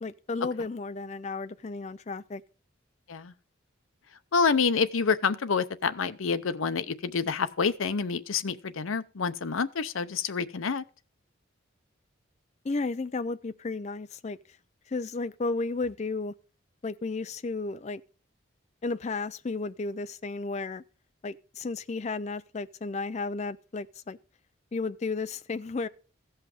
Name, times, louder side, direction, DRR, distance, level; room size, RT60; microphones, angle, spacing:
voice 1, 0.0-2.4 12.6-14.4 14.9-16.3 16.8-18.0 18.8-20.8 21.2-24.2 24.7-25.9, left 3 dB, 35° left, 0.4 m, -33 dB
voice 2, 4.3-10.8, left 5 dB, 80° left, 0.6 m, -27 dB
15.5 x 5.7 x 4.9 m
head